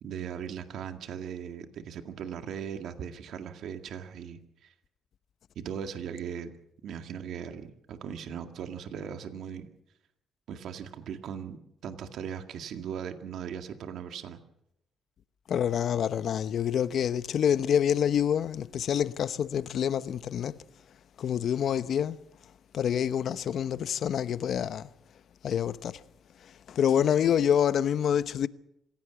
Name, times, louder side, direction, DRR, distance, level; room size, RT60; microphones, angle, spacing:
voice 1, 0.0-4.7 5.6-6.5 6.8-9.7 10.5-14.4, right 8 dB, 75° right, 2.0 m, -38 dB
voice 2, 15.5-20.6 21.2-22.2 22.7-24.9 25.4-26.0 26.7-28.5, left 9 dB, 65° left, 0.9 m, -27 dB
26.5 x 16.5 x 7.1 m
cardioid pair, 90°, 0 cm